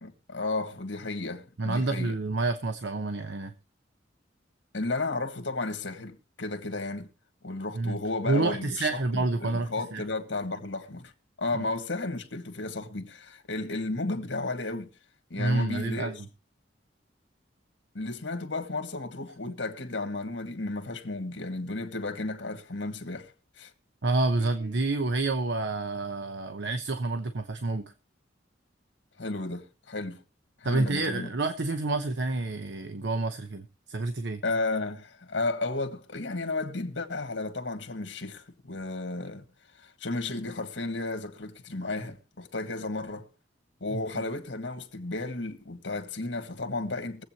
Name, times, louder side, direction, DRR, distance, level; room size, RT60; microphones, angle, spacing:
voice 1, 0.0-2.1 4.7-7.1 7.4-11.1 11.4-14.9 15.3-16.1 17.9-23.7 29.2-30.2 30.6-31.3 34.4-39.4 39.8-43.3 43.8-47.2, left 2 dB, 80° left, 1.7 m, -33 dB
voice 2, 1.6-3.5 7.7-8.0 8.3-10.0 15.4-16.2 24.0-27.8 30.6-34.4 43.9-44.0, right 2 dB, 70° right, 0.9 m, -28 dB
23.0 x 8.1 x 2.9 m
head